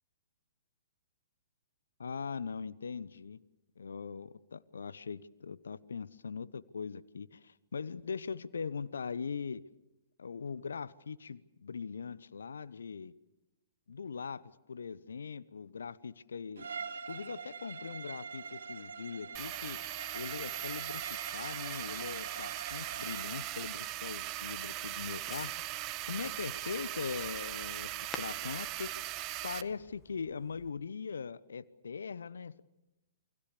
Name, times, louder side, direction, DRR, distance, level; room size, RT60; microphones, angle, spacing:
voice 1, 2.0-3.4 3.8-9.6 10.2-13.1 13.9-16.7 17.1-19.8 20.1-25.7 26.1-28.9 29.4-32.6, left 5 dB, 70° left, 18 dB, 0.9 m, -41 dB
Bowed string instrument, 16.6-23.4, right 5 dB, 65° right, 2.6 m, -44 dB
Fireworks, 19.3-30.7, left 5 dB, 15° left, 1.9 m, -55 dB
sound 1, 19.3-29.6, right 16 dB, 30° right, 1.0 m, -39 dB
28.5 x 23.0 x 6.8 m, 0.95 s
figure-of-eight pair, 115°, 0 cm